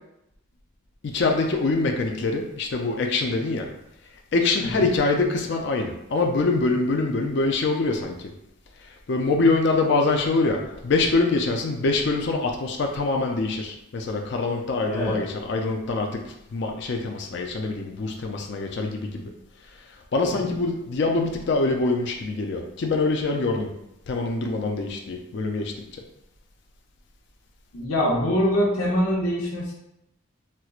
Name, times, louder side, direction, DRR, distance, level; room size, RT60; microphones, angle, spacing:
voice 1, 1.0-3.7 4.3-8.2 9.1-16.2 16.5-19.2 20.1-23.7 24.1-25.7, left 3 dB, 55° left, 2 dB, 0.4 m, -24 dB
voice 2, 4.6-4.9 14.9-15.2 20.2-20.5 27.7-29.7, equal, 80° left, -5 dB, 0.8 m, -24 dB
4.3 x 2.1 x 2.4 m, 0.84 s
head